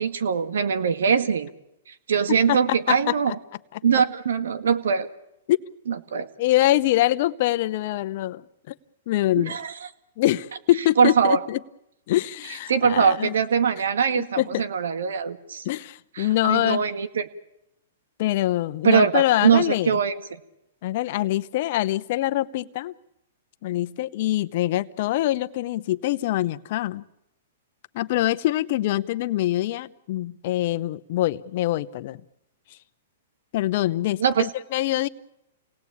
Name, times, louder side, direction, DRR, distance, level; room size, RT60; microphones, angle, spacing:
voice 1, 0.0-1.5 1.9-3.4 3.8-5.1 5.9-6.3 9.4-9.9 11.0-11.4 12.7-15.6 16.2-17.3 18.8-20.4 34.2-34.5, right 6 dB, 80° right, 10 dB, 2.0 m, -22 dB
voice 2, 2.3-3.0 3.3-3.4 5.5-5.6 6.4-8.7 9.1-9.6 10.2-11.6 12.1-13.3 14.1-14.6 15.6-16.8 18.2-19.9 20.8-22.9 23.6-27.0 27.9-32.2 33.5-35.1, left 15 dB, 55° left, 12 dB, 0.9 m, -24 dB
29.5 x 19.0 x 8.7 m, 0.87 s
hypercardioid pair, 130°, 0 cm